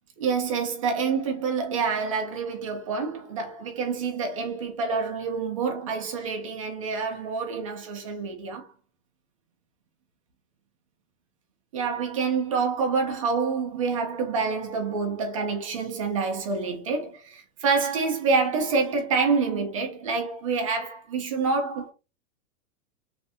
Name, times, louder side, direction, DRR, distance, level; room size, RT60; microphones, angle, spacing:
voice 1, 0.2-8.7 11.7-21.9, right 4 dB, 25° right, 0.3 m, -27 dB
3.2 x 2.6 x 2.5 m
supercardioid pair, 160°, 42 cm